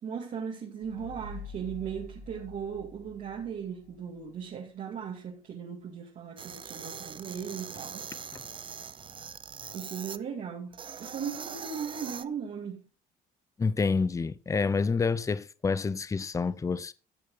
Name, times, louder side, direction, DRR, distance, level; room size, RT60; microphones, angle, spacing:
voice 1, 0.0-8.1 9.7-12.8, right 7 dB, 50° right, 2.3 m, -38 dB
sound 1, 0.8-4.2, left 3 dB, 55° left, 3.4 m, -46 dB
sound 2, 6.4-10.2 10.7-12.3, right 7 dB, 30° right, 0.6 m, -42 dB
voice 2, 13.6-16.9, left 4 dB, 20° left, 0.6 m, -28 dB
14.0 x 6.5 x 3.9 m
cardioid pair, 110°, 17 cm